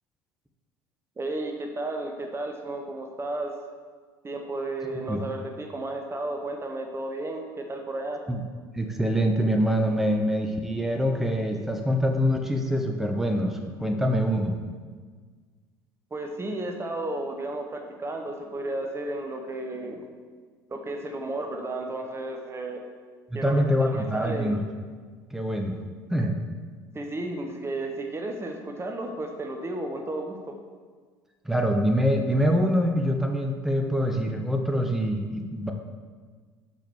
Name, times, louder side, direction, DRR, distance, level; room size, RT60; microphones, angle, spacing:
voice 1, 1.2-3.5 4.2-8.2 16.1-20.1 20.7-22.8 23.3-24.5 26.9-30.4, right 2 dB, 20° right, 3 dB, 1.0 m, -33 dB
voice 2, 8.7-14.5 23.3-24.6 25.3-25.8 26.1-26.4 31.4-35.7, equal, 5° right, 3 dB, 0.8 m, -25 dB
6.1 x 5.7 x 6.3 m, 1.5 s
figure-of-eight pair, 65°, 12 cm